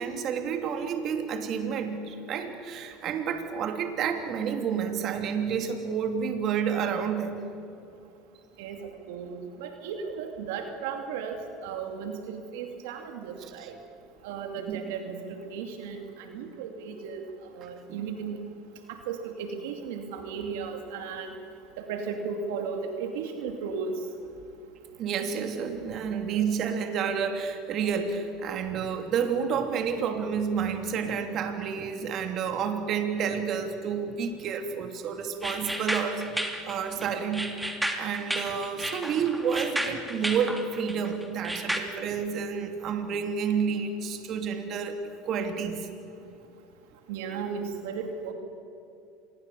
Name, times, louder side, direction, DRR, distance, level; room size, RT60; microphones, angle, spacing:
voice 1, 0.0-7.4 13.4-13.7 14.7-14.8 17.9-18.0 25.0-36.3 36.7-45.0 45.3-45.9, right 6 dB, 50° right, 6 dB, 2.8 m, -30 dB
voice 2, 8.6-13.8 14.2-18.4 18.9-21.4 21.8-24.0 47.1-48.3, right 6 dB, 75° right, 5 dB, 2.6 m, -35 dB
sound 1, 35.4-41.8, right 1 dB, 5° right, 3.0 m, -32 dB
27.0 x 21.5 x 7.2 m, 2.6 s
hypercardioid pair, 85°, 0 cm